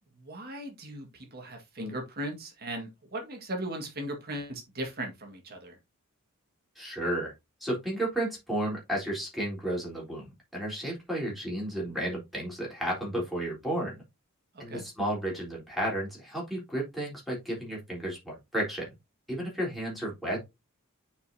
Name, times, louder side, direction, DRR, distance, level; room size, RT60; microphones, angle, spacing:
voice 1, 0.2-5.8 14.5-14.8, right 1 dB, 45° right, 1.8 m, -38 dB
voice 2, 6.8-7.3 7.6-10.2 10.5-14.0 14.6-18.9 19.3-20.4, right 1 dB, ahead, 3.7 m, -32 dB
9.1 x 5.0 x 2.7 m
head